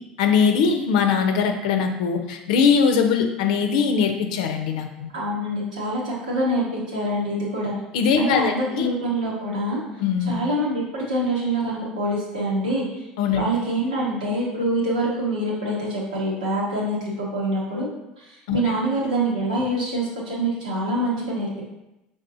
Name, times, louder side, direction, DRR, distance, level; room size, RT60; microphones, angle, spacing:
voice 1, 0.2-4.9 7.9-8.9 10.0-10.4 13.2-13.4 18.5-18.6, left 6 dB, 70° left, 5 dB, 0.6 m, -21 dB
voice 2, 5.1-7.7 8.2-9.8 10.3-13.0 13.3-17.9 18.2-21.6, right 1 dB, 85° right, -6 dB, 1.5 m, -25 dB
5.5 x 3.5 x 2.6 m, 0.92 s
hypercardioid pair, 70°, 4 cm